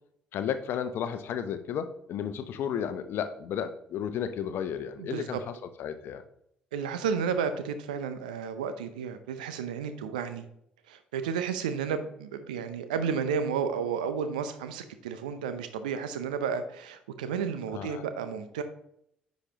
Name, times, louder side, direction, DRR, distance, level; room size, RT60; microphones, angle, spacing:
voice 1, 0.3-5.5 5.8-6.2 17.7-18.0, left 8 dB, 60° left, 10 dB, 0.8 m, -33 dB
voice 2, 5.0-5.4 6.7-10.5 10.9-18.6, right 6 dB, 80° right, 10 dB, 0.7 m, -32 dB
9.8 x 5.3 x 3.0 m, 0.72 s
hypercardioid pair, 45°, 4 cm